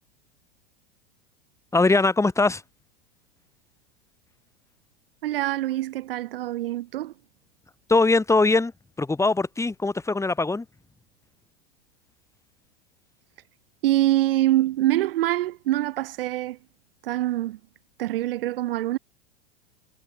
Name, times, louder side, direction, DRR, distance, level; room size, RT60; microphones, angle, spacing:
voice 1, 1.7-2.6 7.9-8.7 9.0-10.7, left 3 dB, 10° left, 5.5 m, -21 dB
voice 2, 5.2-7.1 13.8-16.6 17.0-17.6 18.0-19.0, right 15 dB, 70° right, 2.8 m, -24 dB
hypercardioid pair, 100°, 30 cm